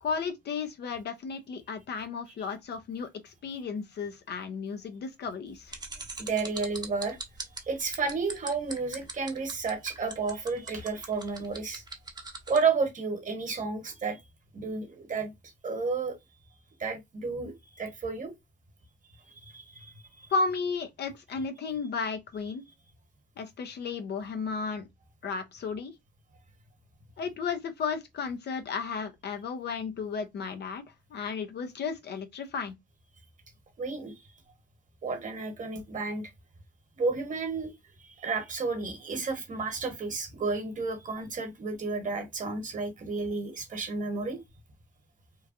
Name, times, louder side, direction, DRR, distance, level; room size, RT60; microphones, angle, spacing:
voice 1, 0.0-5.7 20.3-22.6 23.4-24.9 25.2-25.9 27.2-30.8 31.1-32.7, left 5 dB, 55° left, 0.6 m, -34 dB
sound 1, 5.7-12.6, right 3 dB, 20° right, 0.7 m, -40 dB
voice 2, 6.2-7.2 7.7-11.8 12.5-14.2 14.5-15.3 15.6-16.2 16.8-18.3 19.4-20.3 33.8-34.1 35.0-36.2 37.0-37.7 38.0-44.4, right 4 dB, 40° right, 1.1 m, -32 dB
3.0 x 2.3 x 2.5 m
cardioid pair, 90°, 20 cm